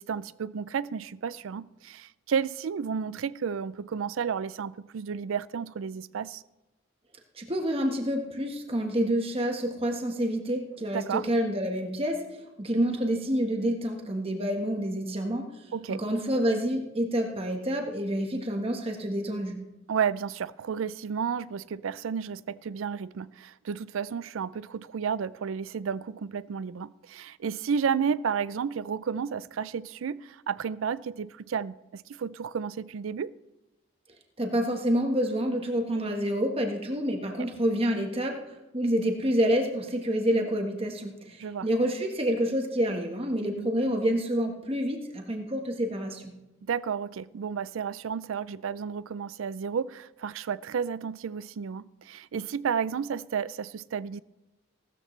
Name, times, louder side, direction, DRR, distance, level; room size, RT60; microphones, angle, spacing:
voice 1, 0.0-6.4 10.9-11.2 15.7-16.0 19.9-33.3 37.4-37.5 41.4-41.7 43.4-43.7 46.6-54.2, right 6 dB, 75° right, 0.4 m, -32 dB
voice 2, 7.3-12.2 12.6-15.5 15.9-19.6 34.4-38.4 38.7-46.3, equal, 30° right, 1.3 m, -28 dB
17.5 x 13.5 x 3.2 m
head